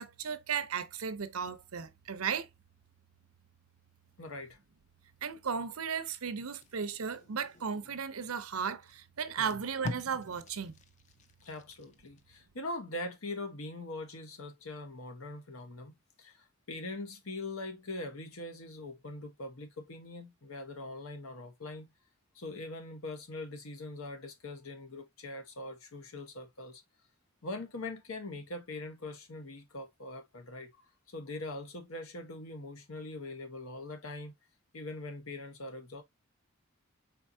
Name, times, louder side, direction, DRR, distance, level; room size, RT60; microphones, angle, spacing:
voice 1, 0.0-2.5 5.2-10.8, right 6 dB, 85° right, 0.6 m, -35 dB
voice 2, 4.2-4.6 9.4-9.6 11.4-21.9 22.3-26.8 27.4-34.3 34.7-36.0, left 2 dB, 85° left, 1.1 m, -42 dB
Packing tape duct tape, 6.4-8.1 8.8-8.9 9.3-12.2 12.7-12.9, left 3 dB, 35° left, 0.4 m, -45 dB
4.4 x 3.9 x 2.6 m
head